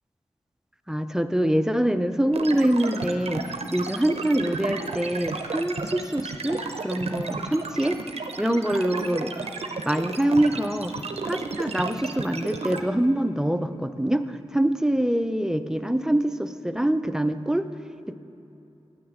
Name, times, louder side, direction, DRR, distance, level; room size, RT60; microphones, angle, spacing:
voice 1, 0.9-8.0 8.4-9.3 9.9-11.0 11.2-17.7 18.1-18.2, right 1 dB, 5° right, 10 dB, 0.4 m, -25 dB
sound 1, 2.3-12.8, right 4 dB, 70° right, 0.6 m, -33 dB
8.8 x 6.1 x 7.1 m, 2.8 s
wide cardioid pair, 70°, 11 cm